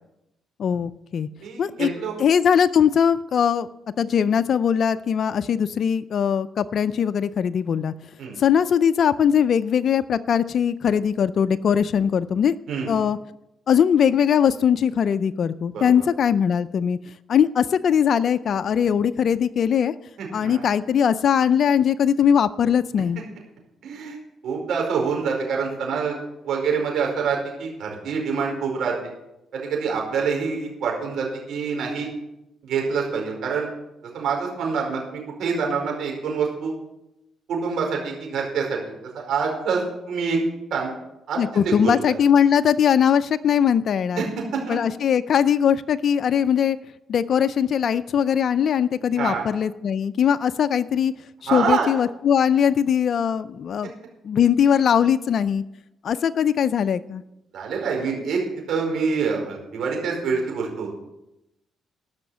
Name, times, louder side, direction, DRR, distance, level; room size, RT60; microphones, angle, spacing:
voice 1, 0.6-1.3 1.6-1.9 2.2-3.7 4.0-7.9 8.4-12.5 12.9-13.2 13.7-17.0 17.3-19.9 20.3-23.2 41.4-44.2 44.7-46.8 47.1-51.1 51.5-53.9 54.2-55.6 56.0-57.2, left 8 dB, 60° left, 12 dB, 0.4 m, -20 dB
voice 2, 1.4-2.1 8.2-8.4 12.7-12.9 15.7-15.9 20.2-20.6 23.8-24.2 24.4-26.1 26.4-28.9 29.5-32.1 32.6-33.7 34.1-36.7 37.5-38.8 39.1-40.4 40.7-40.9 41.3-42.2 44.2-44.3 44.5-44.8 49.2-49.4 51.5-51.9 57.5-58.4 58.7-61.0, right 5 dB, 75° right, 0 dB, 4.8 m, -26 dB
15.0 x 6.2 x 7.0 m, 0.89 s
cardioid pair, 90°, 0 cm